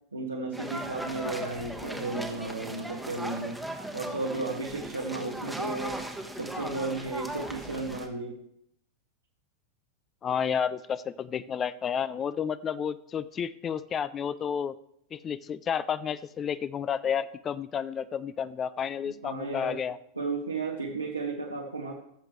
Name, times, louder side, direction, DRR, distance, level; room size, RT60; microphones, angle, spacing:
voice 1, 0.1-3.6 3.9-6.0 6.4-8.4 19.1-19.8 20.2-21.9, right 3 dB, 80° right, 0 dB, 1.2 m, -34 dB
sound 1, 0.5-8.1, right 1 dB, ahead, 1.1 m, -38 dB
voice 2, 10.2-14.7 15.1-20.0, left 7 dB, 25° left, 16 dB, 0.3 m, -31 dB
17.0 x 7.3 x 3.2 m, 0.73 s
figure-of-eight pair, 90°, 0 cm